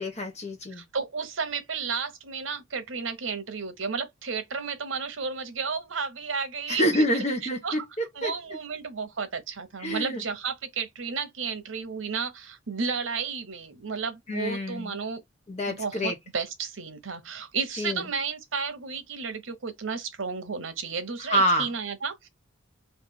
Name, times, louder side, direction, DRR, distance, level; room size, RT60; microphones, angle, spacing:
voice 1, 0.0-0.8 6.7-7.8 8.2-8.3 9.8-10.2 14.3-14.9 15.5-16.1 17.8-18.0 21.3-21.7, equal, 35° left, 1.0 m, -26 dB
voice 2, 0.7-7.0 7.4-7.8 8.1-15.2 15.7-22.3, right 5 dB, 85° right, 0.9 m, -32 dB
3.2 x 2.7 x 3.7 m
head